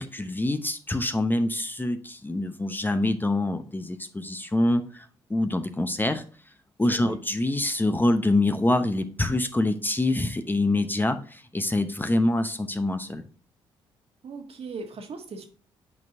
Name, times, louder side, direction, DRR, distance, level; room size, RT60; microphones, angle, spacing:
voice 1, 0.0-6.2 6.8-13.2, left 2 dB, 15° left, 8 dB, 0.7 m, -25 dB
voice 2, 14.2-15.4, right 4 dB, 50° right, 4 dB, 1.5 m, -38 dB
8.3 x 4.5 x 2.7 m, 0.41 s
hypercardioid pair, 50°, 13 cm